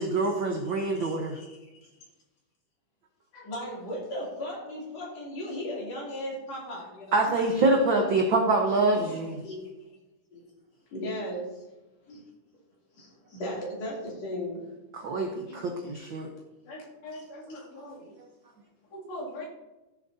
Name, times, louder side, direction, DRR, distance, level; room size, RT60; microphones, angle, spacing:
voice 1, 0.0-1.4 7.1-9.4 14.9-16.3, right 2 dB, 90° right, 1 dB, 1.0 m, -25 dB
voice 2, 0.7-1.6 3.4-7.8 8.9-9.6 10.3-10.4 10.9-11.5 12.1-12.2 13.0-14.6 17.1-17.2, left 1 dB, 55° left, -5 dB, 3.8 m, -37 dB
voice 3, 16.7-18.1 18.9-19.5, left 1 dB, 80° left, -4 dB, 3.9 m, -42 dB
15.0 x 7.4 x 2.7 m, 1.1 s
omnidirectional pair, 3.6 m